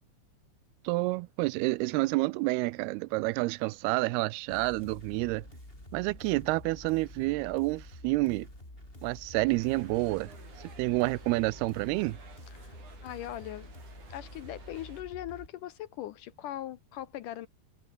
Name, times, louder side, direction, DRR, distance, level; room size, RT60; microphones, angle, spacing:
voice 1, 0.9-5.5 5.9-8.5 9.0-10.3 10.8-12.2, right 22 dB, 85° right, 2.6 m, -29 dB
sound 1, 4.5-15.5, left 1 dB, 15° left, 6.4 m, -48 dB
sound 2, 9.5-15.0, right 5 dB, 50° right, 5.5 m, -54 dB
voice 2, 12.5-12.8 13.0-13.7 14.1-17.5, left 13 dB, 75° left, 2.1 m, -40 dB
omnidirectional pair, 4.4 m